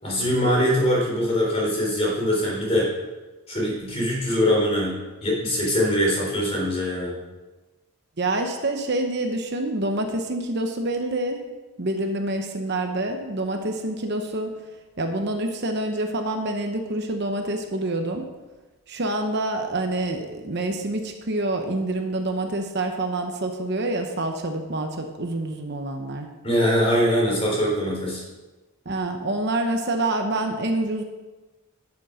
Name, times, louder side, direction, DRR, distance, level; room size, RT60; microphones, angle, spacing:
voice 1, 0.0-2.9 3.5-7.1 26.4-28.2, equal, 25° left, -3 dB, 3.7 m, -22 dB
voice 2, 8.2-11.4 11.8-14.5 15.0-18.2 18.9-26.3 28.8-31.0, right 2 dB, 50° right, 4 dB, 1.0 m, -27 dB
11.5 x 8.4 x 5.1 m, 1.2 s
head